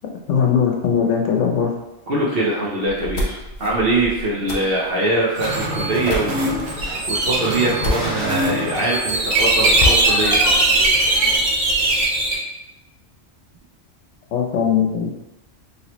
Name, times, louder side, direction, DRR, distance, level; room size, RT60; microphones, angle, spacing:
voice 1, 0.3-1.7 14.3-15.2, left 7 dB, 80° left, 1 dB, 0.9 m, -19 dB
voice 2, 2.1-6.8 7.1-10.4, right 2 dB, 60° right, -5 dB, 0.8 m, -22 dB
sound 1, 2.8-8.5 8.9-9.0 9.3-9.4 9.8-11.9, left 2 dB, 55° left, 0.6 m, -29 dB
sound 2, 4.3-11.5, equal, ahead, 0.7 m, -34 dB
sound 3, 5.4-12.3, right 2 dB, 90° right, 1.2 m, -20 dB
3.0 x 2.9 x 2.9 m, 0.96 s
omnidirectional pair, 1.2 m